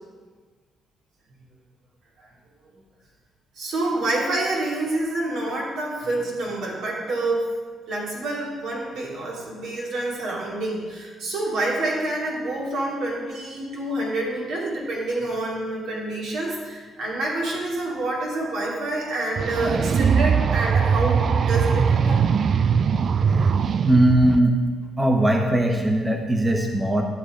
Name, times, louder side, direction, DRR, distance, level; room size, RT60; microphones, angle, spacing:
voice 1, 3.5-7.4 7.9-22.3, right 2 dB, 80° right, -4 dB, 2.9 m, -27 dB
sound 1, 19.4-24.4, right 6 dB, 55° right, 0.3 m, -21 dB
voice 2, 23.8-24.6 25.0-27.0, right 1 dB, 15° right, 2 dB, 1.1 m, -19 dB
12.0 x 6.8 x 5.1 m, 1.5 s
cardioid pair, 90°, 0 cm